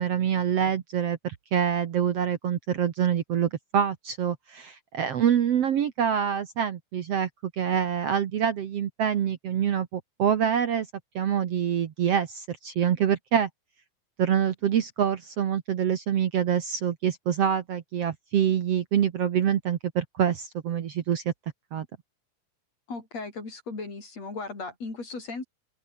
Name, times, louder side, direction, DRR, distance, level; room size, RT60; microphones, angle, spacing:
voice 1, 0.0-10.9 11.2-13.5 14.2-21.3 21.7-21.9, right 9 dB, 55° right, 2.1 m, -26 dB
voice 2, 22.9-25.4, left 3 dB, 50° left, 7.4 m, -36 dB
open air
omnidirectional pair, 3.8 m